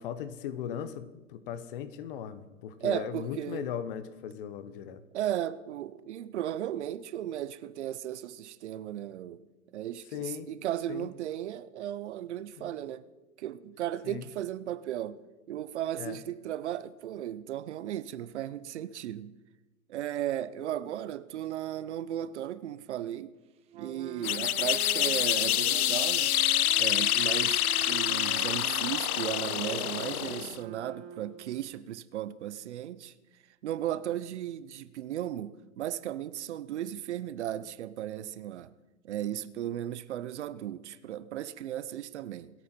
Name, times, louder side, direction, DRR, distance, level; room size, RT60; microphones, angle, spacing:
voice 1, 0.0-5.0 10.1-10.5 10.9-11.1 12.6-12.7 14.0-14.2 16.0-16.2, left 9 dB, 40° left, 1.0 m, -38 dB
voice 2, 2.8-3.7 5.1-9.4 9.7-13.0 13.4-15.2 15.5-19.3 19.9-23.3 23.7-26.4 26.8-33.1 33.6-38.7 39.0-42.5, right 11 dB, 50° right, 0.7 m, -35 dB
Wind instrument woodwind instrument, 23.7-31.6, right 8 dB, 15° right, 0.7 m, -44 dB
sound 1, 24.2-30.6, left 12 dB, 80° left, 0.7 m, -27 dB
26.5 x 9.0 x 4.4 m
hypercardioid pair, 140°, 43 cm